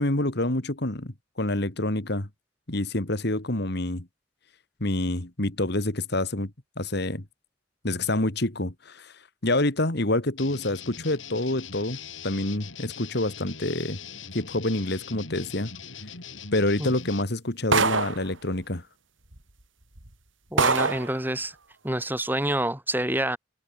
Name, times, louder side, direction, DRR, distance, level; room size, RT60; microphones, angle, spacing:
voice 1, 0.0-2.3 2.7-4.1 4.8-6.5 6.8-7.2 7.8-12.0 12.2-14.0 14.3-15.7 16.5-18.8, left 1 dB, 60° left, 2.6 m, -27 dB
sound 1, 10.4-17.2, left 6 dB, 80° left, 4.7 m, -41 dB
sound 2, 17.7-18.3 19.3-19.4 20.0-20.1 20.6-21.1, right 4 dB, 80° right, 3.9 m, -23 dB
voice 2, 20.5-21.5 21.8-23.4, right 1 dB, 10° right, 6.1 m, -27 dB
head